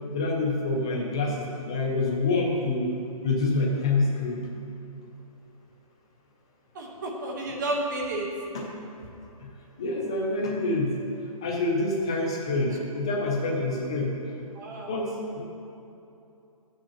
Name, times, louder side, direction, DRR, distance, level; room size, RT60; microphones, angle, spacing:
voice 1, 0.1-2.9 3.2-4.5 8.5-8.6 9.8-10.9 11.4-14.1 14.9-15.4, left 2 dB, 10° left, -2 dB, 0.3 m, -26 dB
voice 2, 6.7-8.3 12.7-12.8 14.5-14.9, right 2 dB, 30° right, 0 dB, 1.2 m, -31 dB
11.5 x 9.0 x 2.9 m, 2.8 s
hypercardioid pair, 165°, 19 cm